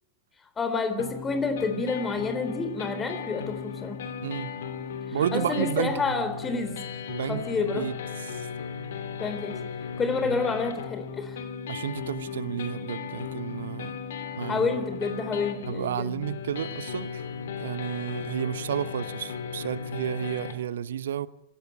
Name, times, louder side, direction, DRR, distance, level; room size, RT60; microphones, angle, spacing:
voice 1, 0.6-4.0 5.1-6.7 7.3-7.9 9.2-9.6 10.0-11.4 14.5-16.3, left 4 dB, 20° left, 3.6 m, -29 dB
sound 1, 1.0-20.5, left 6 dB, 60° left, 2.9 m, -36 dB
voice 2, 5.1-5.9 7.1-7.4 7.7-7.9 10.3-10.4 11.7-14.0 14.4-14.7 15.7-17.2 17.6-21.3, right 10 dB, 65° right, 0.9 m, -31 dB
26.5 x 17.5 x 9.1 m
figure-of-eight pair, 90°, 0 cm